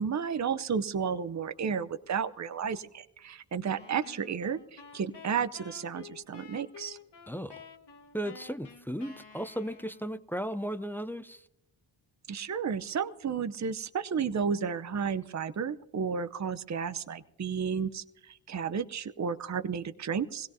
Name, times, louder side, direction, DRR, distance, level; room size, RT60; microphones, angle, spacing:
voice 1, 0.0-7.0 12.3-20.5, right 6 dB, 35° right, 12 dB, 0.7 m, -32 dB
sound 1, 3.6-10.2, left 6 dB, 55° left, 1.7 m, -51 dB
voice 2, 7.3-7.6 8.1-11.4, equal, 5° left, 12 dB, 0.5 m, -35 dB
22.0 x 17.0 x 2.7 m, 0.84 s
cardioid pair, 50°, 49 cm